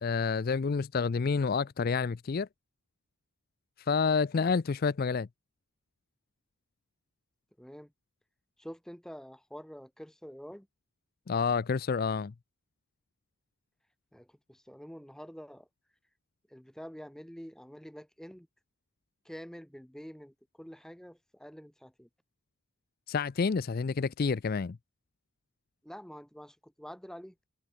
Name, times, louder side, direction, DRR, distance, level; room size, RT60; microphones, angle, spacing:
voice 1, 0.0-2.5 3.8-5.3 11.3-12.3 23.1-24.8, left 5 dB, 40° left, 0.4 m, -29 dB
voice 2, 7.6-7.9 8.6-10.7 14.1-15.7 16.5-18.5 19.2-22.1 25.8-27.3, equal, ahead, 1.0 m, -47 dB
head